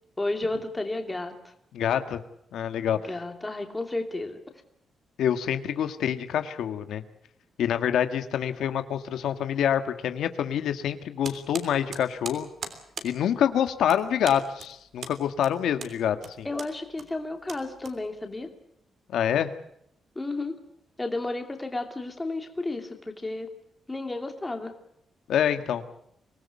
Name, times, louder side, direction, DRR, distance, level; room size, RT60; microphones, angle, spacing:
voice 1, 0.2-1.4 3.0-4.4 16.4-18.5 20.1-20.5 21.0-23.5 23.9-24.7, left 2 dB, 10° left, 5 dB, 2.8 m, -32 dB
voice 2, 1.7-2.2 2.5-3.0 5.2-7.0 7.6-12.5 13.0-16.5 19.1-19.5 25.3-25.8, left 9 dB, 80° left, 9 dB, 1.6 m, -26 dB
sound 1, 11.2-18.4, right 5 dB, 45° right, 3.3 m, -41 dB
25.0 x 19.0 x 8.4 m, 0.75 s
wide cardioid pair, 170°, 0 cm